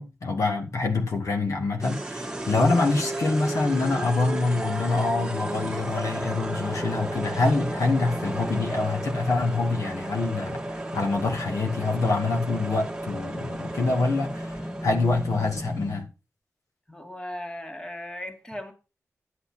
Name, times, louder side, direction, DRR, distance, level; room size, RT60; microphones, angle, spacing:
voice 1, 0.0-16.1, left 3 dB, 75° left, 2.2 m, -26 dB
sound 1, 1.8-16.1, right 1 dB, 15° right, 1.5 m, -33 dB
voice 2, 16.9-18.7, left 1 dB, 15° left, 1.9 m, -37 dB
11.0 x 8.6 x 4.4 m
wide cardioid pair, 105°, 5 cm